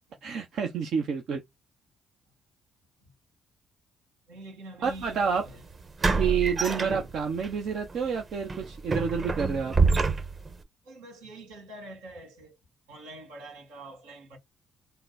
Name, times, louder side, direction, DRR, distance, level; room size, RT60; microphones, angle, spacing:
voice 1, 0.2-1.4 4.8-5.5 6.2-9.7, right 6 dB, 65° right, 0.8 m, -29 dB
voice 2, 4.3-5.6 10.8-12.6 12.9-14.4, right 1 dB, 90° right, 2.2 m, -45 dB
sound 1, 4.9-5.0 6.0-7.5 7.9-8.1 8.5-10.6, right 4 dB, 40° right, 1.2 m, -26 dB
3.9 x 2.3 x 3.9 m
supercardioid pair, 55°, 0 cm